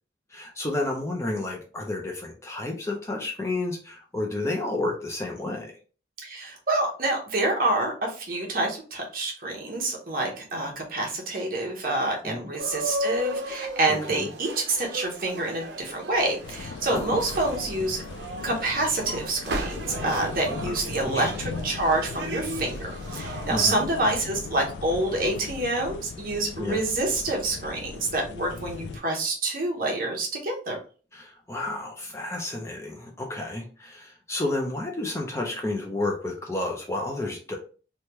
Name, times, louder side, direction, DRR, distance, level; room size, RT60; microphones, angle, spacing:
voice 1, 0.3-5.7 12.2-12.5 13.9-14.3 16.9-17.2 20.5-21.3 23.5-23.8 26.6-26.8 31.1-37.5, left 2 dB, 15° left, 1 dB, 0.4 m, -31 dB
voice 2, 6.2-18.0 18.4-30.8, right 2 dB, 50° right, 0 dB, 0.8 m, -27 dB
sound 1, 12.6-23.8, right 1 dB, 80° right, 0.5 m, -36 dB
sound 2, 16.4-29.0, left 4 dB, 80° left, 0.3 m, -38 dB
3.1 x 2.2 x 2.9 m, 0.38 s
head